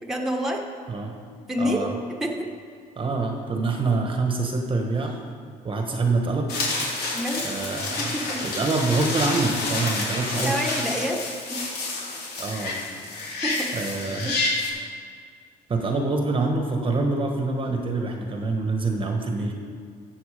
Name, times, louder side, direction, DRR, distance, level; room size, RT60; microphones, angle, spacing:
voice 1, 0.0-0.6 1.5-1.9 2.2-2.5 7.1-7.5 8.0-8.4 10.4-11.2 11.5-11.6 13.4-13.9 14.2-14.4 19.4-19.5, equal, ahead, 0 dB, 1.5 m, -28 dB
voice 2, 1.6-1.9 3.0-5.2 5.6-6.5 7.4-8.1 8.4-10.6 12.4-12.8 13.7-14.3 15.7-19.5, right 3 dB, 30° right, 3 dB, 1.3 m, -25 dB
sound 1, 6.5-14.7, left 3 dB, 65° left, 3.3 m, -29 dB
14.5 x 7.6 x 5.0 m, 2.1 s
cardioid pair, 110°, 17 cm